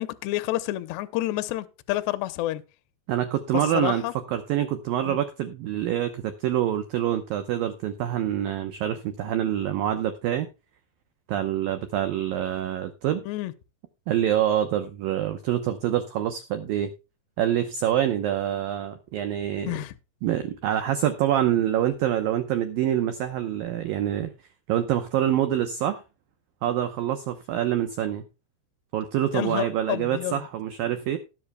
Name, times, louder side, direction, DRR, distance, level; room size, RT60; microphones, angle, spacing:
voice 1, 0.0-2.6 3.5-4.1 5.0-5.2 13.3-13.5 19.7-19.9 29.3-30.5, left 16 dB, 80° left, 2.7 m, -29 dB
voice 2, 3.1-4.0 4.3-10.5 11.3-13.2 14.1-16.9 17.4-19.8 20.2-24.3 24.7-26.0 26.6-28.2 28.9-31.2, right 11 dB, 80° right, 2.0 m, -26 dB
18.5 x 7.7 x 2.2 m
omnidirectional pair, 5.4 m